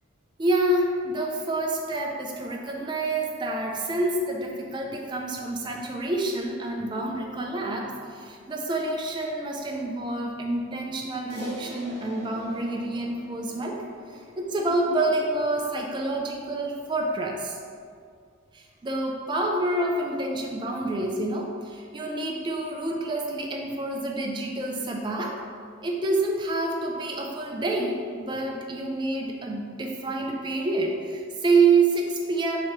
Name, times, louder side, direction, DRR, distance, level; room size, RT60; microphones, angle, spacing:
voice 1, 0.4-13.8 14.1-17.6 18.5-25.4 25.8-32.7, right 2 dB, 25° right, 0 dB, 0.3 m, -27 dB
Crash cymbal, 11.3-15.9, equal, 50° left, 0.8 m, -44 dB
3.0 x 2.8 x 4.4 m, 2.2 s
head